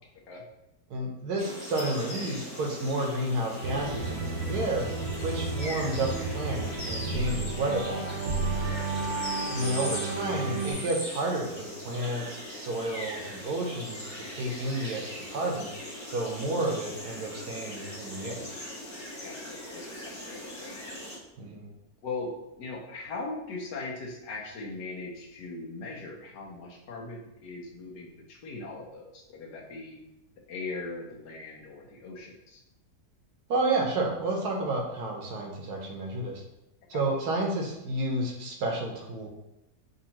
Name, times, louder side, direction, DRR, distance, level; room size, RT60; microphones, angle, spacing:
voice 1, 0.9-4.9 5.2-6.1 6.3-8.2 9.4-15.7 16.1-18.5 21.4-21.6 33.5-36.4 36.9-39.3, right 2 dB, 70° right, 1 dB, 1.2 m, -31 dB
sound 1, 1.4-21.2, left 1 dB, 10° left, 1.2 m, -40 dB
sound 2, 3.6-10.7, right 3 dB, 50° right, 0.8 m, -32 dB
voice 2, 19.2-20.8 22.0-30.0 30.5-32.6 36.9-37.0, left 3 dB, 75° left, -1 dB, 1.4 m, -40 dB
5.2 x 2.7 x 2.9 m, 0.88 s
omnidirectional pair, 1.9 m